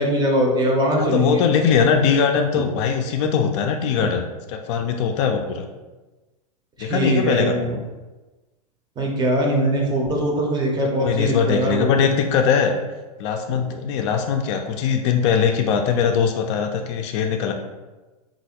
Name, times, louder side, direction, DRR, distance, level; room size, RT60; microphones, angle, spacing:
voice 1, 0.0-1.4 2.6-2.7 6.8-7.8 9.0-11.9, right 1 dB, 20° right, 0 dB, 0.6 m, -21 dB
voice 2, 1.0-4.2 4.5-5.7 6.8-7.5 10.8-12.7 13.2-17.5, left 6 dB, 50° left, 4 dB, 0.4 m, -21 dB
3.0 x 2.5 x 2.8 m, 1.2 s
hypercardioid pair, 115°, 20 cm